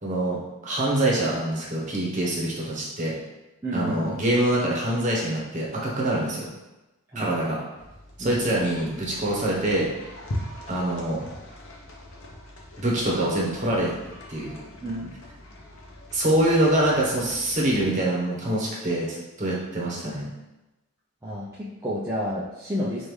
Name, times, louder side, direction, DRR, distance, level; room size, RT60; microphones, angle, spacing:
voice 1, 0.0-3.1 3.7-6.5 7.1-7.6 8.2-9.9 10.7-11.2 12.8-13.9 14.3-14.6 16.1-20.3, right 1 dB, 35° right, -4 dB, 0.9 m, -25 dB
voice 2, 3.6-4.2 7.1-7.3 8.2-8.4 14.8-15.2 21.2-23.1, equal, 10° right, -8 dB, 0.4 m, -30 dB
sound 1, 7.8-17.8, left 1 dB, 60° left, 0.8 m, -41 dB
5.2 x 2.5 x 3.1 m, 1.0 s
head